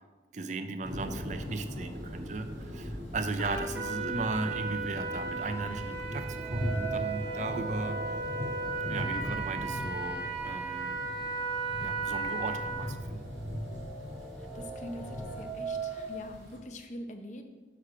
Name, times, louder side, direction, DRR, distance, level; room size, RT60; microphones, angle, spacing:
voice 1, 0.3-8.0 8.9-11.0 11.8-13.3, right 3 dB, 40° right, 9 dB, 0.5 m, -36 dB
sound 1, 0.8-16.6, equal, 90° right, 2.1 m, -40 dB
Trumpet, 3.4-12.9, right 4 dB, 60° right, 1.1 m, -36 dB
sound 2, 6.4-10.4 10.8-10.9 11.8-11.9 12.3-16.1, right 4 dB, 5° right, 1.0 m, -41 dB
voice 2, 14.5-17.4, equal, 40° left, 5 dB, 0.6 m, -44 dB
5.9 x 4.9 x 5.9 m, 1.4 s
head